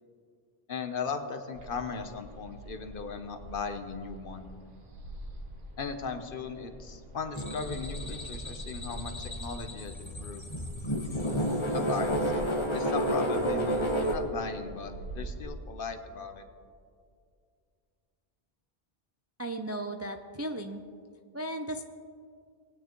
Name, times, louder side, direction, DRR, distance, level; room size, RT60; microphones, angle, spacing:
voice 1, 0.7-4.5 5.8-10.4 11.7-12.3 12.7-16.5, left 4 dB, 60° left, 7 dB, 1.0 m, -37 dB
sound 1, 1.5-15.4, right 1 dB, 55° right, 1.4 m, -45 dB
sound 2, 7.3-14.2, equal, 30° left, 1.2 m, -31 dB
voice 2, 19.4-20.8 21.3-21.8, right 1 dB, 25° right, 5 dB, 0.3 m, -35 dB
20.5 x 9.2 x 3.0 m, 2.2 s
omnidirectional pair, 1.0 m